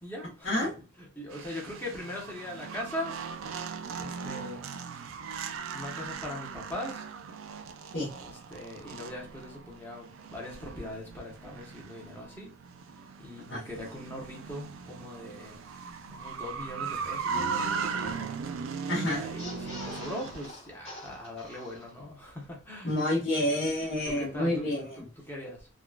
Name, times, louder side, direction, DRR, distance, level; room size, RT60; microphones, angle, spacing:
voice 1, 0.0-3.2 3.9-4.7 5.3-5.4 5.7-7.0 7.9-12.5 13.2-18.4 19.0-23.0 24.1-24.7 25.2-25.7, left 1 dB, 10° left, 0.9 m, -41 dB
sound 1, 1.3-20.5, right 5 dB, 90° right, 0.4 m, -38 dB
voice 2, 18.9-19.2 22.8-25.0, left 1 dB, 55° left, 0.9 m, -28 dB
sound 2, 19.4-22.2 22.6-22.7 22.9-23.0, left 1 dB, 30° left, 1.2 m, -45 dB
3.7 x 2.3 x 2.3 m
head